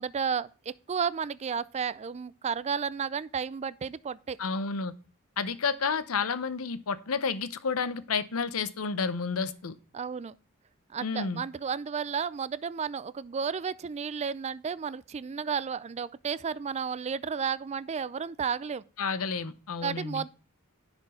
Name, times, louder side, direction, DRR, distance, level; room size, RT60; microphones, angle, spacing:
voice 1, 0.0-4.4 9.9-10.3 10.9-18.8 19.8-20.3, right 6 dB, 30° right, 0.4 m, -32 dB
voice 2, 4.4-4.9 5.4-9.7 11.0-11.4 19.0-20.2, left 5 dB, 75° left, 0.8 m, -30 dB
10.5 x 4.4 x 4.3 m
head